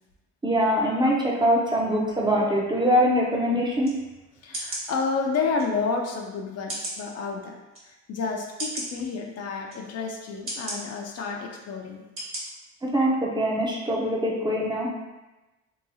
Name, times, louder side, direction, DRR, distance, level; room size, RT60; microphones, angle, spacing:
voice 1, 0.4-3.9 12.9-14.9, equal, 15° right, -4 dB, 0.6 m, -23 dB
sound 1, 3.8-4.0 4.5-4.8 5.6-5.7 6.7-7.0 7.7-7.8 8.6-8.9 9.7-9.8 10.5-10.8 11.5-11.6 12.2-12.4 12.8-12.9, right 1 dB, 45° right, 1.3 m, -33 dB
voice 2, 4.4-7.6 7.8-12.0, left 4 dB, 55° left, 1 dB, 0.5 m, -30 dB
2.8 x 2.3 x 2.6 m, 1.1 s
cardioid pair, 90°, 30 cm